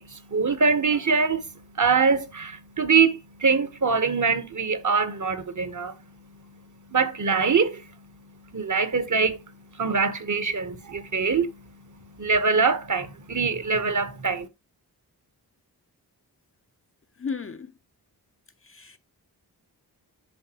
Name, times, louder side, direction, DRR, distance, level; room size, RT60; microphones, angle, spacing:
voice 1, 0.0-6.0 6.9-7.8 8.5-9.4 9.8-11.7 12.2-14.5, right 5 dB, 45° right, 1.0 m, -23 dB
voice 2, 17.2-17.7 18.6-19.0, left 5 dB, 35° left, 0.5 m, -34 dB
10.5 x 3.7 x 2.9 m
cardioid pair, 60°, 40 cm